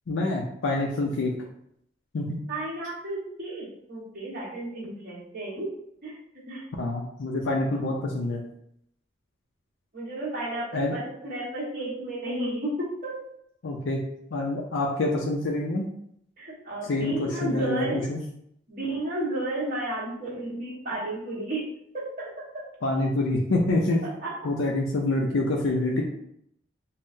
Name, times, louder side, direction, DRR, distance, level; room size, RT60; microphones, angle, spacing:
voice 1, 0.1-1.3 2.1-2.4 6.8-8.4 10.7-10.9 13.6-14.0 14.3-15.9 16.9-18.2 22.8-24.0 24.4-26.0, left 2 dB, 80° left, -1 dB, 0.5 m, -26 dB
voice 2, 2.5-5.7 6.0-6.2 6.5-6.6 9.9-13.2 16.4-18.0 18.7-21.6 21.9-22.6 24.0-24.3, right 1 dB, 45° right, -6 dB, 1.2 m, -32 dB
5.5 x 2.1 x 2.6 m, 0.74 s
head